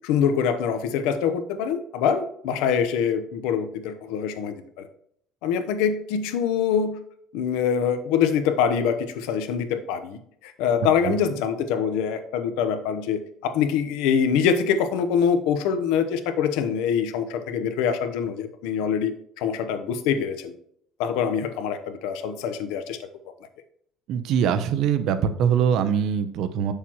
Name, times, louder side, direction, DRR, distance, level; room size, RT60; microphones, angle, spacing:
voice 1, 0.0-4.5 5.4-7.0 7.3-19.1 19.4-20.5 21.0-23.0, left 7 dB, 90° left, 10 dB, 0.9 m, -24 dB
voice 2, 24.1-26.7, right 8 dB, 60° right, 10 dB, 0.8 m, -23 dB
7.4 x 6.7 x 3.1 m, 0.67 s
cardioid pair, 140°, 0 cm